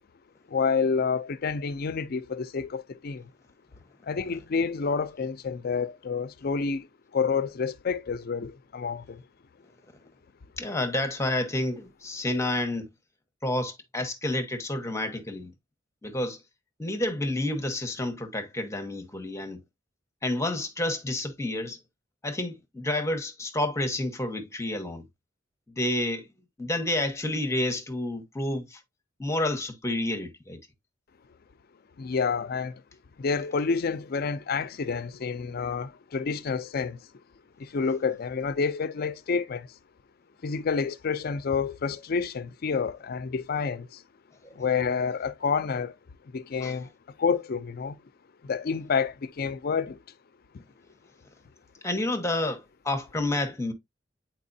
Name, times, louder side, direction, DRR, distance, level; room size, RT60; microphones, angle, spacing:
voice 1, 0.5-3.2 4.0-6.9 7.1-9.2 32.0-32.8 33.2-37.0 37.6-39.7 40.4-44.0 44.6-46.0 46.3-46.9 47.2-48.0 48.4-50.0 50.5-50.6, left 5 dB, 55° left, 0.5 m, -29 dB
voice 2, 10.6-12.9 13.4-15.5 16.0-16.4 16.8-19.6 20.2-21.8 22.2-25.1 25.7-26.3 26.6-28.8 29.2-30.6 44.4-44.5 46.6-46.7 51.8-53.7, left 1 dB, 15° left, 1.1 m, -29 dB
8.4 x 4.5 x 2.6 m
head